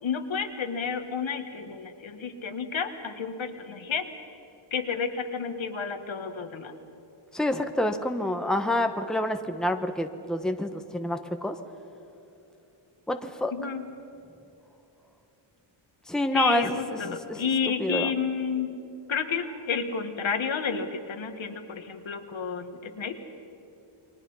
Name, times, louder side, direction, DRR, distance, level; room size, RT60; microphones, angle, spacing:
voice 1, 0.0-4.1 4.7-6.7 13.5-13.9 16.3-18.7 19.1-23.2, left 6 dB, 65° left, 6 dB, 1.9 m, -31 dB
voice 2, 7.3-11.6 13.1-13.5 16.1-16.8 17.8-18.1, left 1 dB, ahead, 6 dB, 1.2 m, -27 dB
29.5 x 23.0 x 5.7 m, 2.8 s
wide cardioid pair, 95°, 49 cm